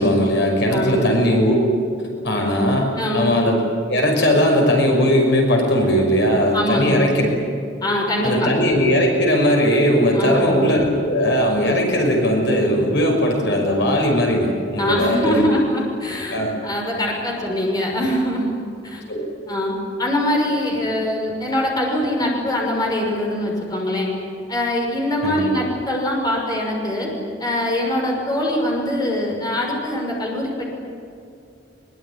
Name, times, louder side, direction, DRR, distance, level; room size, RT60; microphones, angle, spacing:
voice 1, 0.0-1.8 2.2-3.6 3.9-7.3 8.2-15.5 16.3-16.5 19.1-19.3 25.2-25.5, equal, 65° left, 1 dB, 5.9 m, -18 dB
voice 2, 3.0-3.3 6.5-7.0 7.8-8.5 10.1-10.5 14.8-18.5 18.8-19.0 19.5-19.7 20.0-24.1 24.5-27.1 27.4-30.7, left 1 dB, 20° left, -1 dB, 6.2 m, -23 dB
23.5 x 23.0 x 9.9 m, 2.5 s
head